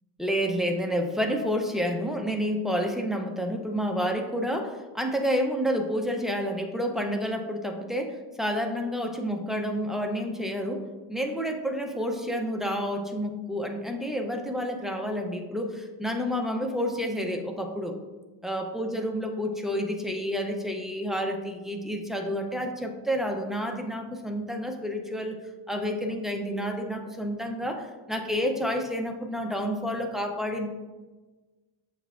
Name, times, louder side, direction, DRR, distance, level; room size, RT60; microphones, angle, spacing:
voice 1, 0.2-10.8 11.1-18.0 18.4-25.4 25.7-30.7, equal, ahead, 2 dB, 0.6 m, -29 dB
6.9 x 5.5 x 2.5 m, 1.2 s
wide cardioid pair, 115°, 50 cm